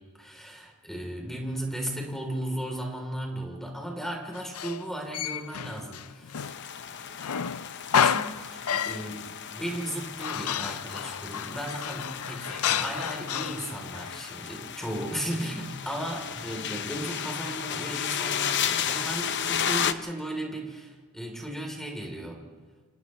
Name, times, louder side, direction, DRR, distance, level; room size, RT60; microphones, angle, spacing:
voice 1, 0.2-6.4 8.0-8.6 8.8-22.4, right 1 dB, ahead, 0 dB, 3.3 m, -35 dB
Male speech man speaking, 4.3-6.8 7.2-9.1 9.8-14.2, left 8 dB, 85° left, 0.6 m, -30 dB
sound 1, 6.4-19.9, left 8 dB, 55° left, 0.8 m, -34 dB
30.0 x 27.5 x 3.2 m, 1.4 s
head